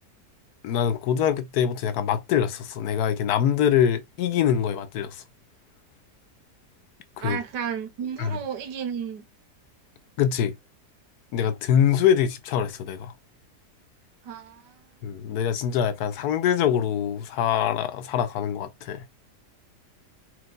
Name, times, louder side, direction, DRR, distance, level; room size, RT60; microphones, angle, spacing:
voice 1, 0.6-5.2 7.2-7.4 8.2-8.4 10.2-10.5 11.3-13.1 15.0-19.0, left 9 dB, 75° left, 1.1 m, -24 dB
voice 2, 7.2-9.2 14.2-14.8, right 7 dB, 80° right, 1.4 m, -33 dB
4.6 x 2.3 x 3.7 m
omnidirectional pair, 1.8 m